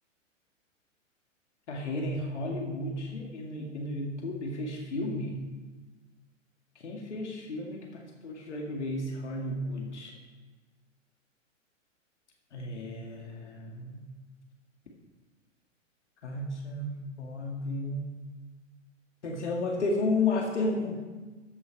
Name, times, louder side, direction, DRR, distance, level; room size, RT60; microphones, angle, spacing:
voice 1, 1.7-5.4 6.8-10.1 12.5-14.0 16.2-18.1 19.2-20.9, left 2 dB, 60° left, 0 dB, 2.2 m, -33 dB
14.5 x 7.8 x 5.4 m, 1.3 s
figure-of-eight pair, 105°, 39 cm